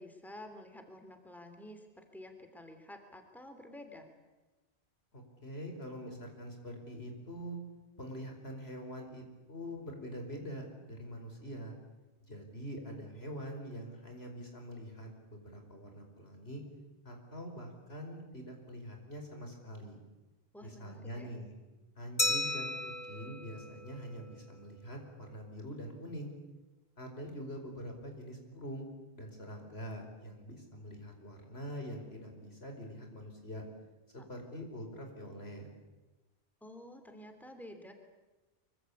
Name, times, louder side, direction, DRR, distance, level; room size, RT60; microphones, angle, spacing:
voice 1, 0.0-4.1 20.5-21.3 36.6-37.9, left 1 dB, ahead, 6 dB, 3.1 m, -50 dB
voice 2, 5.1-7.6 8.0-11.7 12.2-16.6 17.1-20.0 20.6-21.5 22.0-26.3 27.0-28.9 29.1-33.6 34.1-35.7, equal, 70° left, 3 dB, 5.2 m, -44 dB
Glass, 22.2-24.7, left 2 dB, 30° left, 1.5 m, -35 dB
25.0 x 24.0 x 8.5 m, 1.1 s
omnidirectional pair, 1.1 m